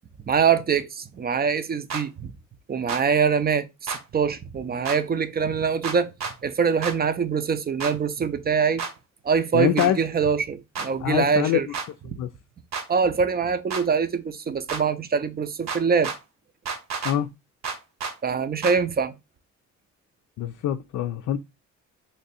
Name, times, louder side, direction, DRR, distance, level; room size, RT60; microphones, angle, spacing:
voice 1, 0.3-2.3 2.7-6.1 6.4-8.8 9.2-11.7 12.9-16.1 18.2-19.1, right 6 dB, 30° right, 0.5 m, -24 dB
sound 1, 1.9-2.0 2.9-3.0 3.9-4.0 4.8-5.0 5.8-6.3 6.8-7.0 7.8-7.9 8.8-8.9 9.8-9.9 10.7-10.9 11.7-11.9 12.7-12.9 13.7-13.8 14.7-14.8 15.7-16.2 16.7-17.2 17.6-18.1 18.6-18.8, right 5 dB, 65° right, 1.1 m, -30 dB
voice 2, 9.5-10.0 11.0-11.7 12.1-12.3 17.0-17.3 20.4-21.4, left 11 dB, 60° left, 0.4 m, -24 dB
3.3 x 2.5 x 4.1 m
cardioid pair, 90°, 30 cm